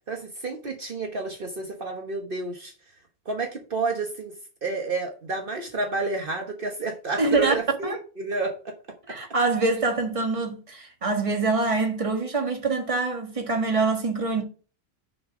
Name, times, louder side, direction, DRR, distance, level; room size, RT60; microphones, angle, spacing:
voice 1, 0.1-2.7 3.3-4.3 4.6-8.7 9.1-9.2, right 3 dB, 55° right, 1.4 m, -30 dB
voice 2, 7.2-7.5 7.8-8.0 9.1-14.4, right 3 dB, 30° right, 1.6 m, -25 dB
6.3 x 5.8 x 5.0 m
omnidirectional pair, 1.1 m